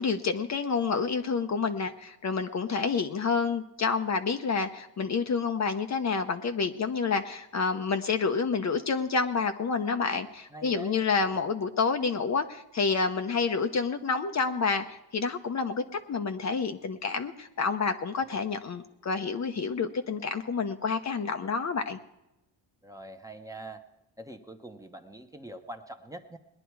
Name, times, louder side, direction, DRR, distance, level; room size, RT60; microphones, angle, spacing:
voice 1, 0.0-15.8 16.1-22.0, left 5 dB, 35° left, 7 dB, 0.8 m, -29 dB
voice 2, 10.5-11.0 11.3-11.5 22.8-23.8 24.2-26.4, right 1 dB, 5° right, 5 dB, 0.9 m, -44 dB
19.5 x 10.5 x 4.7 m, 0.93 s
cardioid pair, 115°, 46 cm